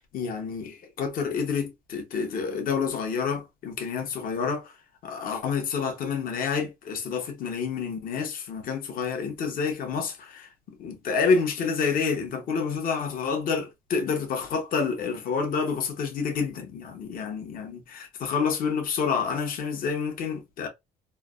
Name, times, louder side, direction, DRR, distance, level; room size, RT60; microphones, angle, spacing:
voice 1, 0.1-4.7 5.0-10.5 10.8-20.7, left 5 dB, 55° left, 0.8 m, -28 dB
3.1 x 2.0 x 2.3 m
cardioid pair, 110°, 17 cm